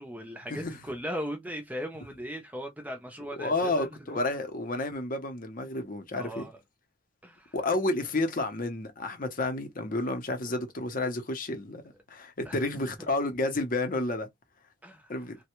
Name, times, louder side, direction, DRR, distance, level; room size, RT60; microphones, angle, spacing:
voice 1, 0.0-4.2 6.2-6.6 7.2-7.6 12.4-12.8 14.8-15.1, equal, 10° right, 0.6 m, -38 dB
voice 2, 3.4-6.5 7.5-14.3 15.1-15.4, left 2 dB, 40° left, 0.7 m, -31 dB
3.1 x 2.2 x 3.0 m
head